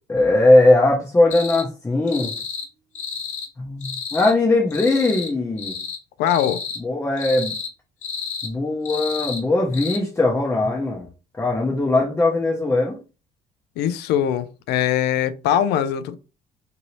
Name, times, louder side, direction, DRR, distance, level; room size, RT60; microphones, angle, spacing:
voice 1, 0.1-2.3 3.6-5.7 6.8-7.5 8.4-11.1 11.3-13.0, left 2 dB, 15° left, 0.7 m, -19 dB
sound 1, 1.3-1.6 2.1-2.7 2.9-3.5 3.8-4.3 4.7-5.3 5.6-6.0 6.3-6.8 7.2-7.7 8.0-8.5 8.8-9.4 9.7-10.0, left 5 dB, 45° left, 0.8 m, -31 dB
voice 2, 6.2-6.6 13.8-16.2, left 10 dB, 80° left, 0.4 m, -21 dB
2.7 x 2.7 x 3.0 m
cardioid pair, 110°, 17 cm